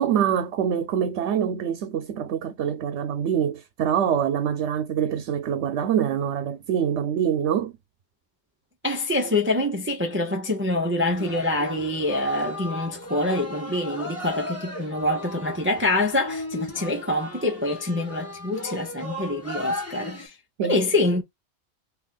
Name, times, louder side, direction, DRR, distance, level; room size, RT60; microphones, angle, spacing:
voice 1, 0.0-7.7 20.6-20.8, right 8 dB, 90° right, 0.9 m, -25 dB
voice 2, 8.8-20.3 20.6-21.2, left 2 dB, 15° right, 0.4 m, -25 dB
sound 1, 11.1-20.3, left 1 dB, 15° left, 1.0 m, -36 dB
2.9 x 2.4 x 3.7 m
omnidirectional pair, 1.1 m